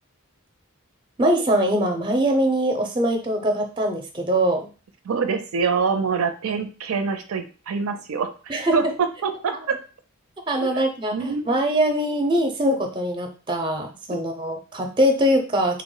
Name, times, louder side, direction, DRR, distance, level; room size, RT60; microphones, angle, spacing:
voice 1, 1.2-4.7 8.5-8.7 10.5-15.8, right 1 dB, 25° right, 4 dB, 0.5 m, -22 dB
voice 2, 5.1-9.8 10.6-10.8 11.1-11.5, right 5 dB, 90° right, 8 dB, 0.5 m, -25 dB
3.3 x 2.0 x 3.8 m, 0.35 s
head